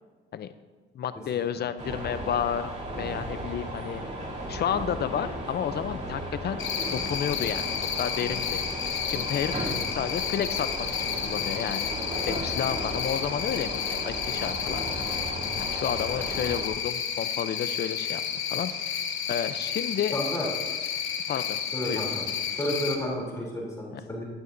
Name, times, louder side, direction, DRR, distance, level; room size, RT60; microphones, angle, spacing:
voice 1, 0.9-4.0 4.5-6.6 6.9-7.7 8.0-8.6 9.0-9.6 9.9-11.9 12.3-15.0 15.6-18.2 18.5-18.7 19.3-20.2 21.3-21.6 21.9-22.1 23.9-24.0, left 9 dB, 55° left, 12 dB, 0.6 m, -31 dB
sound 1, 1.8-16.7, right 1 dB, 35° right, 2.9 m, -35 dB
Cricket, 6.6-22.9, left 8 dB, 80° left, 1.1 m, -31 dB
voice 2, 20.1-20.5 21.7-22.2 22.6-24.2, equal, 15° left, -4 dB, 3.1 m, -31 dB
13.5 x 11.5 x 2.6 m, 1.4 s
cardioid pair, 90°, 20 cm